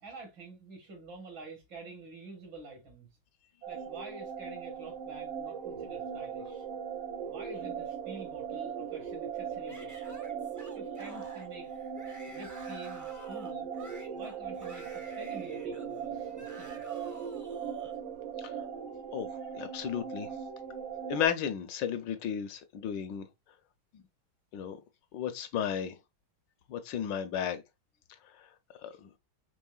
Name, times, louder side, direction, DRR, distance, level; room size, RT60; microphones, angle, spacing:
voice 1, 0.0-3.1 3.7-6.7 7.3-9.9 10.7-11.7 12.3-13.7 14.1-16.7, right 3 dB, 70° right, 2.1 m, -48 dB
sound 1, 3.6-21.3, right 7 dB, 85° right, 1.6 m, -39 dB
Yell / Screaming, 9.7-18.0, right 1 dB, 25° right, 0.3 m, -51 dB
voice 2, 19.5-20.3 21.1-23.3 24.5-24.8 25.1-26.0 26.7-27.6 28.8-29.1, left 9 dB, 75° left, 1.2 m, -33 dB
5.5 x 3.2 x 2.3 m
omnidirectional pair, 2.2 m